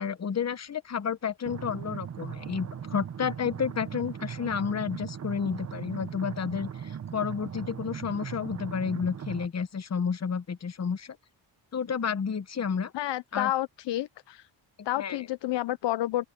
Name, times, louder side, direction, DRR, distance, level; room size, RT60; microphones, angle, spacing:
voice 1, 0.0-11.2 11.7-12.9 13.3-13.5 15.0-15.2, left 6 dB, 35° left, 1.1 m, -31 dB
sound 1, 1.5-9.5, right 8 dB, 35° right, 0.8 m, -38 dB
voice 2, 12.9-14.5 14.8-16.3, left 14 dB, 65° left, 0.6 m, -30 dB
open air
cardioid pair, 115°, 46 cm